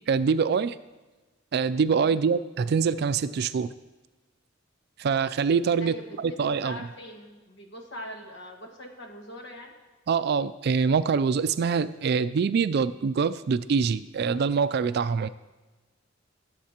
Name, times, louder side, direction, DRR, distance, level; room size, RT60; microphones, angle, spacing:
voice 1, 0.1-0.8 1.5-3.7 5.0-6.7 10.1-15.3, right 5 dB, 55° right, 14 dB, 0.3 m, -24 dB
voice 2, 5.8-9.7, equal, 60° left, 2 dB, 1.6 m, -42 dB
20.5 x 7.4 x 2.9 m, 1.2 s
head